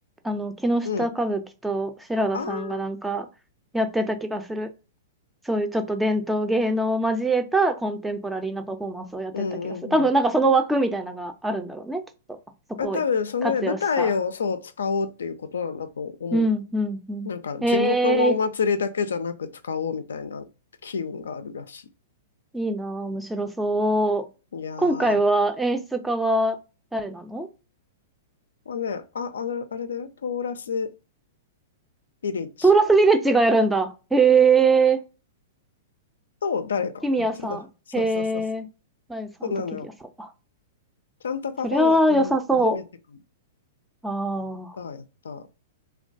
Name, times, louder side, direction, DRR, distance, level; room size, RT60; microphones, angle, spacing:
voice 1, 0.2-3.3 3.7-4.7 5.5-12.0 12.8-13.0 13.4-14.1 16.3-17.3 17.6-18.4 22.5-24.3 24.8-26.6 26.9-27.5 32.6-35.0 37.0-37.7 37.9-38.7 39.1-39.5 40.2-40.3 41.6-42.8 44.0-44.8, right 2 dB, 5° right, 0.4 m, -23 dB
voice 2, 2.3-2.8 9.3-10.1 12.8-16.5 17.2-20.5 20.8-21.8 24.5-25.2 28.7-30.9 32.2-32.5 36.4-37.6 38.0-38.4 39.5-39.9 41.2-42.8 44.8-45.5, left 5 dB, 85° left, 0.3 m, -28 dB
2.2 x 2.2 x 2.5 m
hypercardioid pair, 125°, 0 cm